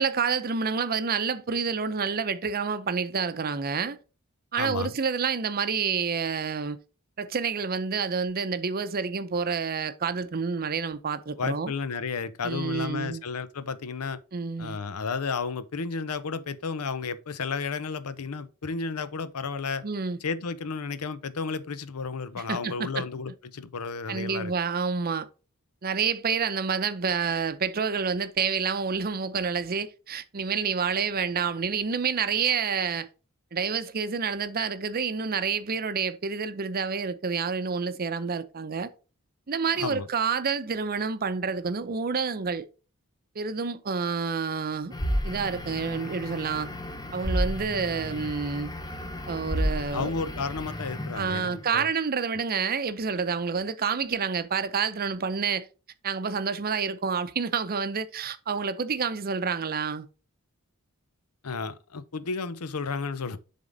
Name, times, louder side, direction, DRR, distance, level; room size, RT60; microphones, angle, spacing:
voice 1, 0.0-4.0 4.5-6.8 7.2-11.7 12.4-13.2 14.3-14.8 19.8-20.2 22.4-23.0 24.1-25.3 25.8-33.1 33.5-38.9 39.5-42.7 43.4-44.9 45.2-46.7 47.1-48.7 49.3-50.1 51.1-55.7 56.0-60.1, right 5 dB, 45° right, 0.6 m, -28 dB
voice 2, 4.6-4.9 11.4-14.2 14.6-19.8 20.2-24.5 39.7-40.1 49.9-51.9 61.4-63.4, left 4 dB, 90° left, 0.7 m, -32 dB
sound 1, 44.9-51.6, equal, 20° left, 0.7 m, -32 dB
7.2 x 3.7 x 5.1 m
head